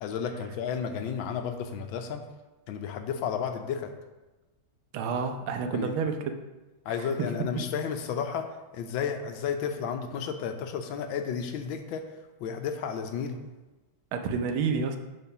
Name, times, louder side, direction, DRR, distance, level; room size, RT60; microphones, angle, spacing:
voice 1, 0.0-2.2 2.7-3.9 5.7-5.9 6.9-8.5 8.7-12.0 12.4-13.4, left 7 dB, 75° left, 7 dB, 1.4 m, -32 dB
voice 2, 4.9-6.4 6.9-7.3 14.1-15.0, right 5 dB, 90° right, 6 dB, 1.6 m, -29 dB
6.8 x 4.2 x 5.8 m, 1.1 s
omnidirectional pair, 2.2 m